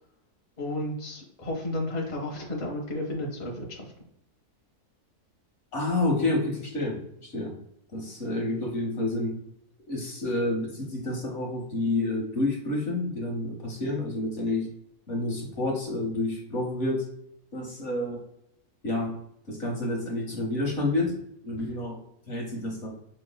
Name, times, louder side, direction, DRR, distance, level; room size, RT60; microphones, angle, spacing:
voice 1, 0.6-3.9, left 1 dB, 35° left, -1 dB, 0.9 m, -32 dB
voice 2, 5.7-7.6 7.9-9.4 9.9-14.7 15.1-17.1 17.5-18.3 18.8-19.2 19.5-22.0 22.3-22.9, left 2 dB, 55° left, -1 dB, 1.2 m, -29 dB
5.1 x 3.2 x 2.2 m, 0.75 s
omnidirectional pair, 1.6 m